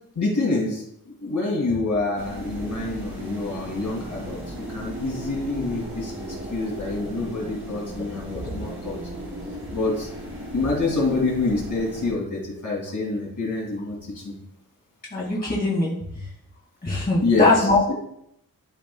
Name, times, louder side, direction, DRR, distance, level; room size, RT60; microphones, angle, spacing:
voice 1, 0.2-9.0 9.7-10.1 10.5-14.4 17.2-17.9, left 3 dB, 55° left, -3 dB, 2.4 m, -26 dB
sound 1, 2.2-12.1, right 1 dB, 35° right, 2.7 m, -36 dB
voice 2, 15.1-15.9 16.8-17.9, left 2 dB, 25° left, -5 dB, 2.2 m, -21 dB
13.0 x 5.1 x 2.3 m, 0.76 s
wide cardioid pair, 130°, 37 cm